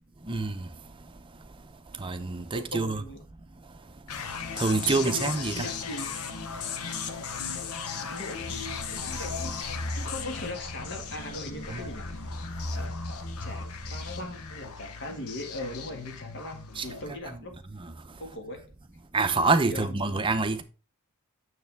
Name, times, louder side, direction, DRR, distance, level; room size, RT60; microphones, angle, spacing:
voice 1, 0.3-0.7 2.0-3.0 4.6-5.7 11.7-11.8 16.8-16.9 19.1-20.6, right 3 dB, 20° right, 0.6 m, -26 dB
voice 2, 2.5-3.2 4.8-6.2 8.0-9.6 10.0-12.3 12.7-17.5 18.2-18.6 19.7-20.2, left 1 dB, 55° left, 1.7 m, -39 dB
sound 1, 4.1-17.1, left 6 dB, 80° left, 0.9 m, -37 dB
sound 2, 8.3-14.9, left 1 dB, 35° left, 0.8 m, -39 dB
6.8 x 6.6 x 3.4 m
head